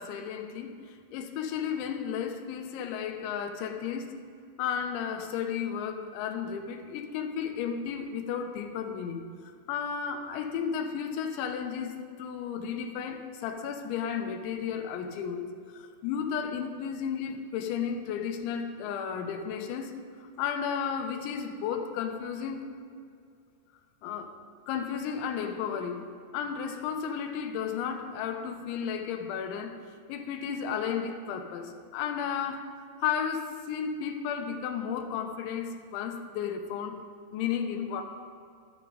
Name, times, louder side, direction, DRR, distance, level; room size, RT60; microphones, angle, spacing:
voice 1, 0.0-4.2 4.6-19.9 20.2-22.7 24.0-24.3 24.7-29.8 30.1-32.7 33.0-37.0 37.3-38.0, left 7 dB, 85° left, 5 dB, 3.2 m, -33 dB
12.5 x 12.5 x 3.9 m, 2.3 s
omnidirectional pair, 5.3 m